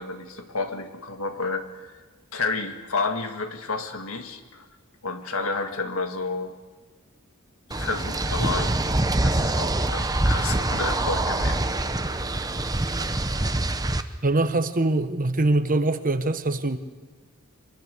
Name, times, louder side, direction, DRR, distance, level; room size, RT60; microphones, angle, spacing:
voice 1, 0.0-2.0 2.3-4.7 5.0-6.5 7.7-8.8 9.2-12.2, left 3 dB, 70° left, 7 dB, 1.9 m, -31 dB
sound 1, 7.7-14.0, right 2 dB, 15° right, 0.9 m, -25 dB
voice 2, 14.2-16.8, right 2 dB, 40° right, 10 dB, 1.2 m, -23 dB
24.5 x 22.0 x 6.7 m, 1.3 s
head